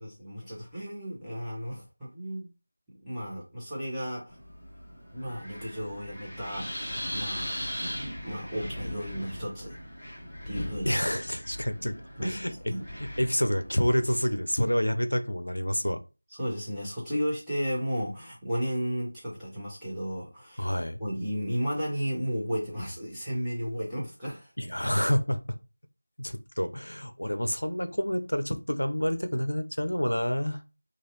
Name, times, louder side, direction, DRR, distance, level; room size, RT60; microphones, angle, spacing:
voice 1, 0.0-2.5 3.0-4.4 5.1-7.5 7.8-7.9 8.2-9.7 10.4-11.0 12.2-12.4 12.7-12.8 16.4-20.7 21.0-24.5, equal, ahead, 0.8 m, -33 dB
Wind, 4.3-14.4, equal, 20° left, 1.1 m, -39 dB
voice 2, 10.9-12.0 12.2-12.7 13.0-16.0 20.6-21.0 23.6-23.8 24.6-25.4 26.2-30.6, equal, 85° left, 0.5 m, -28 dB
3.0 x 2.4 x 3.0 m
figure-of-eight pair, 170°, 0 cm